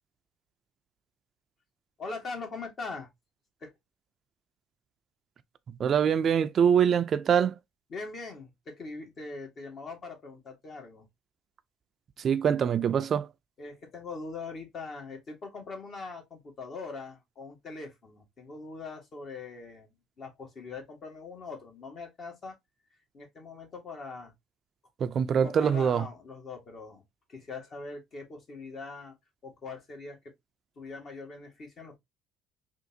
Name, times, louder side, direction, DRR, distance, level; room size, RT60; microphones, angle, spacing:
voice 1, 2.0-3.1 3.6-3.7 7.9-11.1 13.6-19.9 20.2-22.5 23.1-24.3 25.4-27.0 27.3-29.1 29.4-30.3 30.7-32.0, left 3 dB, 45° left, 1.4 m, -42 dB
voice 2, 5.8-7.6 12.2-13.3 25.0-26.0, right 8 dB, 45° right, 0.3 m, -24 dB
3.7 x 2.4 x 2.6 m
supercardioid pair, 95°, 0 cm